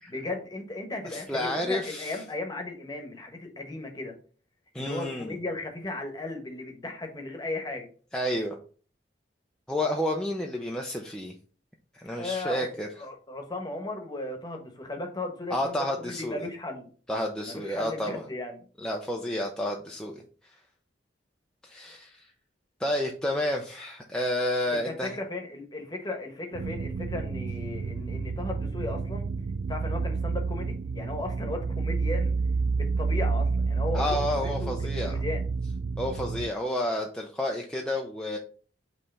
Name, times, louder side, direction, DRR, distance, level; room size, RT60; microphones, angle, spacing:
voice 1, 0.1-4.2 4.7-7.9 12.2-12.7 13.0-16.9 17.4-18.6 24.7-29.3 29.7-32.3 32.7-34.8 35.0-35.4, left 2 dB, 20° left, 3 dB, 1.2 m, -36 dB
voice 2, 1.0-2.2 4.7-5.4 8.1-8.6 9.7-11.3 11.9-12.9 15.5-16.4 17.1-18.2 18.8-20.2 21.6-22.3 22.8-25.1 33.9-35.2 36.0-38.4, left 1 dB, 5° left, 0 dB, 0.6 m, -30 dB
sound 1, 26.5-36.5, right 4 dB, 75° right, 0.4 m, -29 dB
5.5 x 3.3 x 5.3 m, 0.41 s
head